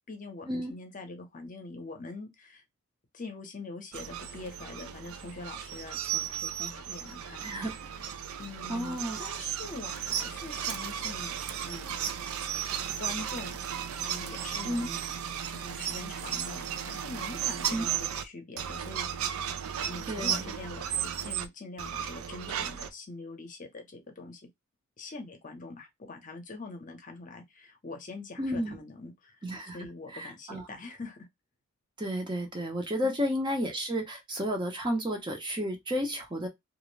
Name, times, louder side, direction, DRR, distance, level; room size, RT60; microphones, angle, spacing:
voice 1, 0.1-2.6 3.1-7.6 8.4-11.3 11.7-12.3 13.0-13.6 13.9-15.0 15.5-19.1 19.8-24.5 25.0-29.3 29.7-31.2 33.0-33.1, left 3 dB, 40° left, 0.7 m, -43 dB
sound 1, 3.9-18.2 18.6-21.5 21.8-22.9, right 9 dB, 80° right, 0.4 m, -35 dB
voice 2, 7.4-7.8 8.7-9.3 14.6-14.9 17.7-17.8 20.1-20.5 28.4-28.8 29.4-29.8 30.1-30.6 32.0-36.5, equal, 20° right, 0.6 m, -32 dB
2.4 x 2.1 x 3.1 m
head